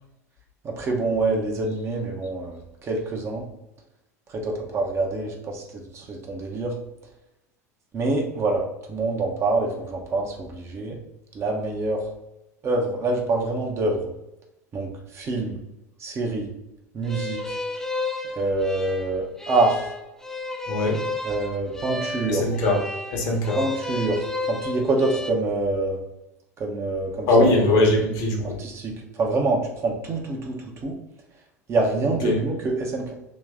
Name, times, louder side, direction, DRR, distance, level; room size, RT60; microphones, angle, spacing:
voice 1, 0.6-3.5 4.3-6.8 7.9-11.0 11.3-12.1 12.6-14.1 14.7-15.6 16.0-16.5 16.9-17.6 18.3-19.9 21.2-22.5 23.6-26.0 26.6-27.5 28.6-31.0 31.7-33.1, right 2 dB, 30° right, 0 dB, 0.9 m, -26 dB
sound 1, 17.1-25.3, left 2 dB, 5° left, 0.5 m, -32 dB
voice 2, 20.7-21.0 22.3-22.8 23.1-23.6 27.3-28.6 32.2-32.4, left 2 dB, 50° left, 0 dB, 1.1 m, -21 dB
3.1 x 3.0 x 3.6 m, 0.92 s
figure-of-eight pair, 75°, 9 cm